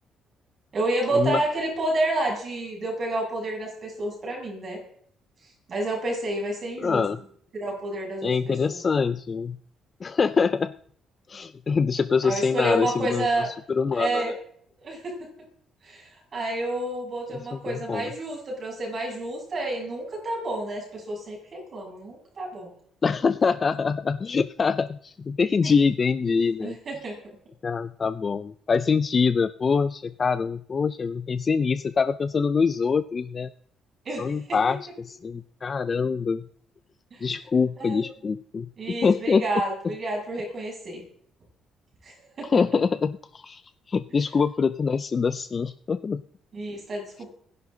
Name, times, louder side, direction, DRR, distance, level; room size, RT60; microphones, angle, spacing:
voice 1, 0.7-4.8 5.7-7.0 7.5-8.8 12.2-13.5 13.9-14.3 14.8-15.1 15.8-22.7 25.6-25.7 26.6-27.2 34.0-34.6 37.1-37.2 37.8-38.1 38.8-41.0 42.0-42.8 46.5-47.3, right 2 dB, 40° right, -1 dB, 7.5 m, -30 dB
voice 2, 6.8-7.2 8.2-9.6 10.0-10.7 11.3-14.2 17.5-18.1 23.0-26.7 27.6-33.5 34.2-36.4 37.2-39.4 42.4-43.6 43.9-46.2, left 5 dB, 35° left, 12 dB, 0.5 m, -24 dB
28.0 x 11.0 x 3.9 m, 0.63 s
cardioid pair, 120°, 0 cm